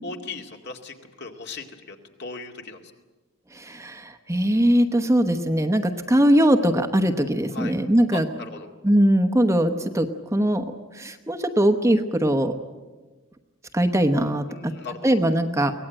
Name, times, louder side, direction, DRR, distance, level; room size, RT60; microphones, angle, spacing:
voice 1, 0.0-2.8 7.5-7.7 8.1-8.7 14.5-15.2, left 4 dB, 55° left, 3 dB, 2.2 m, -37 dB
voice 2, 3.5-8.3 8.8-12.5 13.7-14.7 15.0-15.8, equal, 15° right, 6 dB, 1.0 m, -21 dB
24.0 x 18.5 x 8.9 m, 1.3 s
head